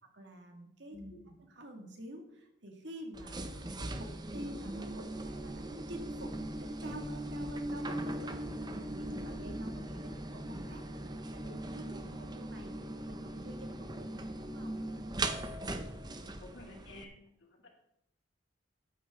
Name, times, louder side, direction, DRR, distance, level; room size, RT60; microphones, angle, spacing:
voice 1, 0.1-1.0 1.5-8.3 8.7-12.7 13.0-14.8, right 1 dB, 60° right, 3 dB, 2.3 m, -48 dB
voice 2, 0.9-1.4 16.4-17.1 17.4-17.7, left 1 dB, 75° left, 0 dB, 3.0 m, -50 dB
sound 1, 3.1-17.0, right 1 dB, 20° right, 0.8 m, -40 dB
14.0 x 9.1 x 3.8 m, 0.78 s
head